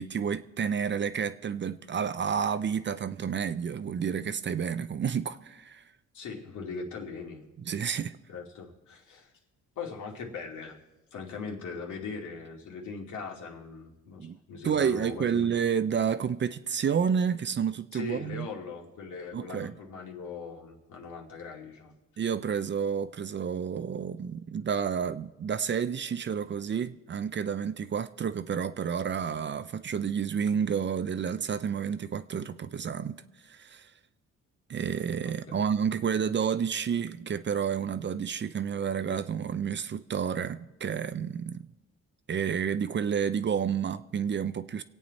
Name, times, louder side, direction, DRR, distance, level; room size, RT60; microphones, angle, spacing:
voice 1, 0.0-5.8 7.7-8.1 14.2-14.4 14.6-18.5 19.3-19.7 22.2-33.2 33.5-33.9 34.7-41.7 42.3-44.8, right 7 dB, 40° right, 0.6 m, -30 dB
voice 2, 6.1-7.4 8.3-9.3 9.8-10.8 11.1-15.5 17.9-21.9 35.2-35.6, left 5 dB, 75° left, 2.5 m, -40 dB
25.0 x 8.6 x 4.1 m
cardioid pair, 90°, 30 cm